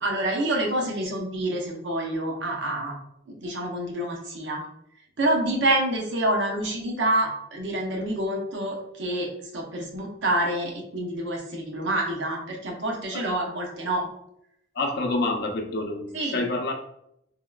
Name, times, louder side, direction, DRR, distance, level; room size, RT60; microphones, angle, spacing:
voice 1, 0.0-3.0 3.3-4.6 5.2-9.3 9.5-14.1 16.1-16.5, right 1 dB, 75° right, -1 dB, 0.7 m, -27 dB
voice 2, 14.8-16.7, left 2 dB, 60° left, 4 dB, 0.5 m, -27 dB
3.6 x 2.3 x 2.2 m, 0.78 s
head